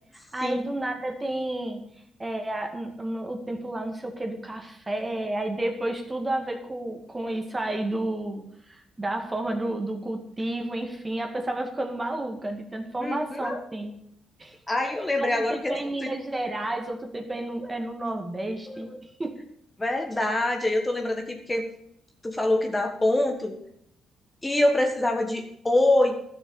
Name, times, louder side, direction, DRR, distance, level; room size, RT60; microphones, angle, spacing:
voice 1, 0.1-1.9 2.2-14.0 14.4-14.6 15.2-18.9 19.2-19.4, right 1 dB, 20° right, 4 dB, 2.0 m, -31 dB
voice 2, 13.0-13.6 14.7-15.7 16.0-16.1 18.7-19.0 19.8-21.7 22.2-23.6 24.4-26.2, left 1 dB, 15° left, 4 dB, 1.5 m, -25 dB
12.5 x 6.7 x 7.1 m, 0.72 s
cardioid pair, 90°, 0 cm